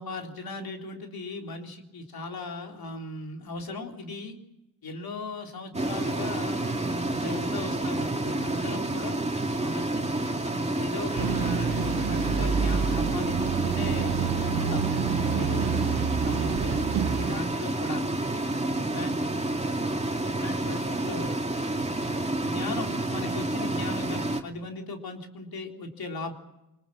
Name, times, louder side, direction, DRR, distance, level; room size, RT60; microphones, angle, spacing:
voice 1, 0.0-4.4 4.8-9.2 9.6-14.1 14.6-14.9 15.3-18.1 18.9-19.2 20.4-21.3 22.4-26.3, left 2 dB, 70° left, 3 dB, 3.7 m, -37 dB
sound 1, 5.7-24.4, right 2 dB, 15° right, 2.4 m, -29 dB
sound 2, 11.2-17.3, right 7 dB, 90° right, 1.4 m, -28 dB
25.0 x 20.0 x 7.6 m, 0.91 s
supercardioid pair, 50°, 38 cm